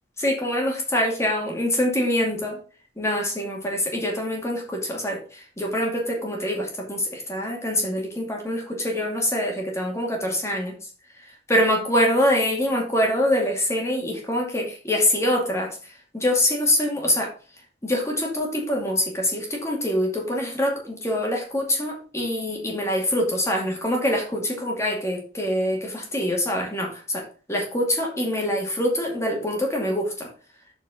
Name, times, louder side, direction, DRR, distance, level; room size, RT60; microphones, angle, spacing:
voice 1, 0.2-2.6 3.0-10.9 11.2-17.3 17.8-30.3, left 1 dB, 15° left, 0 dB, 2.3 m, -25 dB
7.2 x 5.0 x 5.7 m, 0.39 s
head